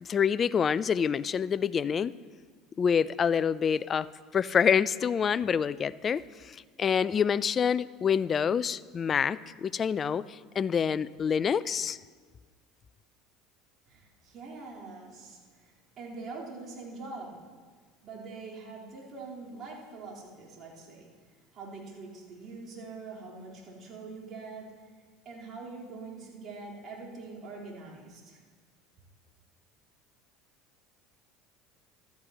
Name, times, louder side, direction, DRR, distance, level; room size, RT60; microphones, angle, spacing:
voice 1, 0.0-2.1 2.8-4.1 4.3-6.2 6.5-12.0, left 7 dB, 35° left, 0.4 m, -27 dB
voice 2, 13.9-17.4 18.0-21.1 21.5-24.9 25.2-28.4, right 3 dB, 45° right, 3.9 m, -44 dB
15.0 x 12.5 x 3.0 m
hypercardioid pair, 75°, 0 cm